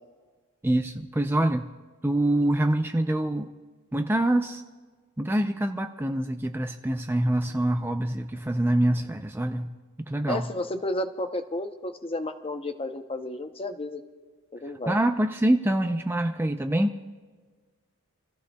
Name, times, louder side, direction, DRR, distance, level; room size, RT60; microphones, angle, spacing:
voice 1, 0.6-1.7 2.0-3.5 3.9-4.6 5.2-9.7 10.1-10.5 14.9-16.9, right 1 dB, 10° right, 5 dB, 0.4 m, -25 dB
voice 2, 10.3-14.0 14.5-14.9, left 1 dB, 25° left, 8 dB, 0.8 m, -32 dB
28.0 x 15.5 x 2.3 m, 1.4 s
head